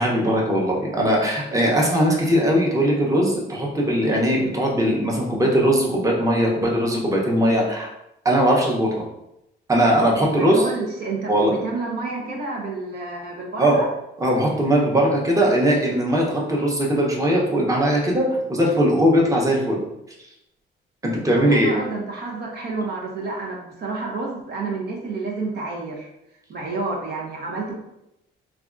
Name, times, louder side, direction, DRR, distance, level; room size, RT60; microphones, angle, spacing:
voice 1, 0.0-7.9 8.2-9.0 9.7-10.7 11.3-11.5 13.6-13.8 14.2-19.8 21.0-21.7, equal, 15° right, -2 dB, 0.8 m, -20 dB
voice 2, 10.3-11.3 11.6-13.9 21.3-26.1 26.5-27.8, right 3 dB, 55° right, -2 dB, 0.6 m, -29 dB
3.3 x 2.3 x 2.5 m, 0.85 s
cardioid pair, 90°, 20 cm